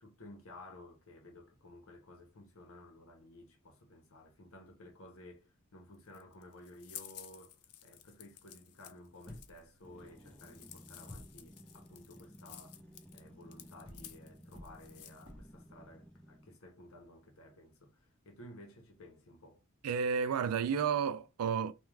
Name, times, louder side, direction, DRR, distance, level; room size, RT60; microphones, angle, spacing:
voice 1, 0.0-12.8 13.1-19.6, left 1 dB, 65° left, 0.8 m, -55 dB
sound 1, 5.9-15.3, left 12 dB, 80° left, 0.4 m, -54 dB
sound 2, 9.3-9.9 11.1-11.5 13.8-15.7, left 1 dB, 20° right, 0.9 m, -52 dB
sound 3, 9.8-16.6, equal, 5° left, 0.6 m, -56 dB
voice 2, 19.8-21.7, right 6 dB, 85° right, 0.3 m, -31 dB
2.3 x 2.2 x 3.2 m
head